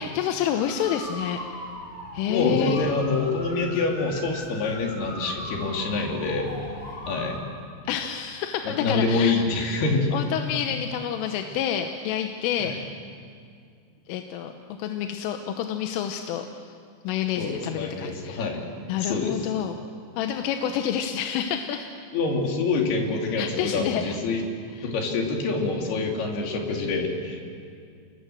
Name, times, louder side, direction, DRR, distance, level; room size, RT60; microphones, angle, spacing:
voice 1, 0.0-1.4 2.1-2.9 7.9-9.4 10.1-12.8 14.1-14.5 14.8-16.5 17.1-18.5 18.9-19.8 20.2-22.1 23.4-24.0 24.8-24.9, left 9 dB, 85° left, 5 dB, 3.5 m, -28 dB
sound 1, 0.5-7.4, left 1 dB, 30° left, 4.1 m, -38 dB
voice 2, 2.3-6.5 7.1-7.4 8.6-10.1 12.6-12.8 17.4-18.7 19.0-19.4 22.1-24.4 24.8-27.4, left 3 dB, 60° left, 1 dB, 4.4 m, -26 dB
28.0 x 21.0 x 7.7 m, 2.3 s
omnidirectional pair, 5.6 m